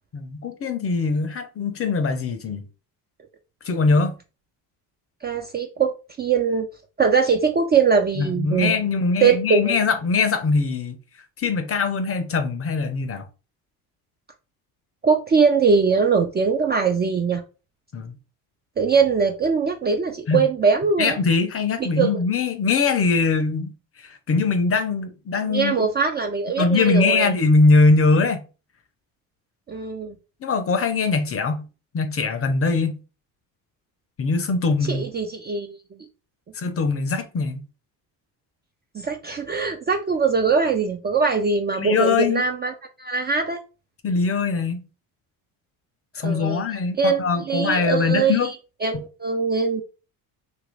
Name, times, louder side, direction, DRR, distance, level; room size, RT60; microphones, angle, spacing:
voice 1, 0.1-2.6 3.6-4.1 8.2-11.0 11.4-13.3 17.9-18.2 20.3-20.5 21.0-25.7 26.6-28.4 30.4-31.7 31.9-33.0 34.2-35.0 36.5-37.7 41.8-42.4 44.0-44.8 46.1-48.5, left 4 dB, 30° left, 0.6 m, -22 dB
voice 2, 5.2-5.9 6.2-6.7 7.0-8.7 9.2-9.8 15.0-17.4 18.8-21.2 21.8-22.2 25.4-27.3 29.7-30.2 34.9-35.7 38.9-42.7 43.0-43.6 46.2-46.6 47.0-47.2 47.5-48.5 48.8-49.8, right 5 dB, 25° right, 0.4 m, -21 dB
2.9 x 2.6 x 3.1 m
supercardioid pair, 75°, 45 cm